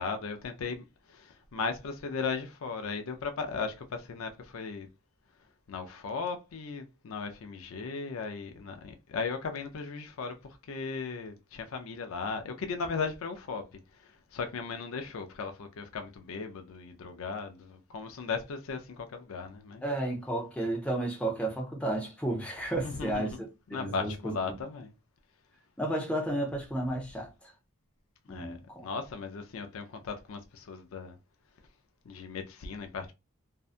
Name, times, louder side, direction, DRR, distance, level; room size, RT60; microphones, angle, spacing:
voice 1, 0.0-4.9 5.7-19.8 22.8-23.4 23.7-24.9 28.3-31.2 32.0-33.1, left 4 dB, 70° left, 0.4 m, -37 dB
voice 2, 19.8-23.4 23.7-24.3 25.8-27.3 28.3-28.9, right 1 dB, 5° left, 0.7 m, -32 dB
2.6 x 2.2 x 2.4 m
head